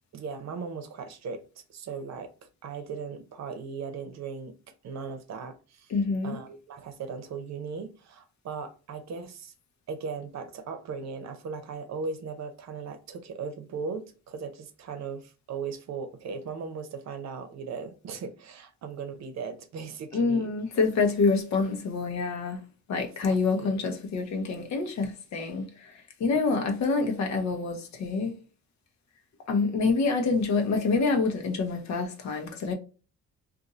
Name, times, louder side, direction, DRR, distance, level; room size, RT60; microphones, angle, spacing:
voice 1, 0.1-1.4 1.7-2.3 2.6-4.6 4.8-5.9 6.2-9.5 9.9-20.5 23.0-23.9 26.6-26.7, right 5 dB, 60° right, 0.7 m, -38 dB
voice 2, 5.9-6.4 20.1-22.6 22.9-28.3 29.5-32.7, left 4 dB, 65° left, 0.9 m, -27 dB
2.6 x 2.6 x 4.0 m
cardioid pair, 90°, 30 cm